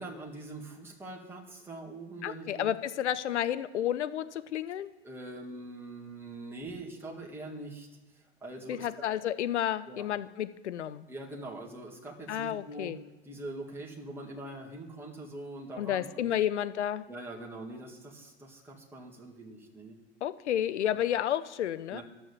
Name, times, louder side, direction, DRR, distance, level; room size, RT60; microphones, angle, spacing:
voice 1, 0.0-2.7 5.0-9.0 9.9-10.1 11.1-12.9 13.2-16.3 17.1-20.0 21.9-22.0, right 2 dB, 5° right, -3 dB, 1.9 m, -43 dB
voice 2, 2.2-4.9 8.7-11.1 12.3-13.0 15.8-17.0 20.2-22.0, left 11 dB, 85° left, 13 dB, 0.5 m, -31 dB
11.0 x 6.3 x 6.9 m, 1.1 s
hypercardioid pair, 85°, 34 cm